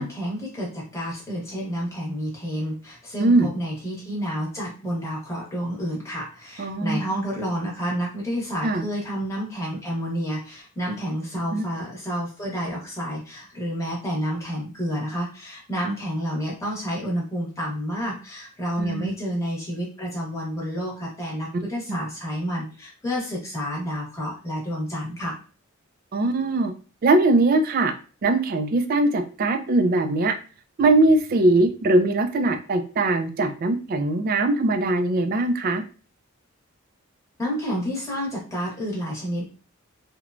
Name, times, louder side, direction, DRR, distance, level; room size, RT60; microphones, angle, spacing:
voice 1, 0.0-25.4 37.4-39.4, equal, 15° left, -4 dB, 1.0 m, -29 dB
voice 2, 6.6-7.0 8.6-8.8 11.5-11.7 18.8-19.1 21.9-22.0 26.1-26.7 27.0-27.9 28.2-30.3 30.8-35.8, right 2 dB, 45° right, 7 dB, 0.3 m, -21 dB
3.0 x 2.1 x 2.4 m, 0.36 s
head